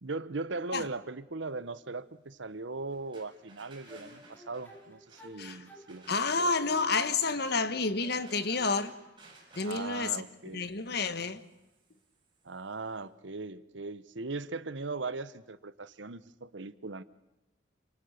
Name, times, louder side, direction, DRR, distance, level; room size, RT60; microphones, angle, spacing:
voice 1, 0.0-6.2 9.6-10.7 12.4-17.0, right 3 dB, 70° right, 1.0 m, -39 dB
sound 1, 2.8-12.7, right 3 dB, 25° right, 7.1 m, -57 dB
sound 2, 3.9-7.6 8.0-9.0, left 1 dB, 10° left, 3.9 m, -52 dB
voice 2, 6.1-8.9 9.5-10.2 10.5-11.4, left 4 dB, 55° left, 1.3 m, -30 dB
28.0 x 26.0 x 6.6 m
head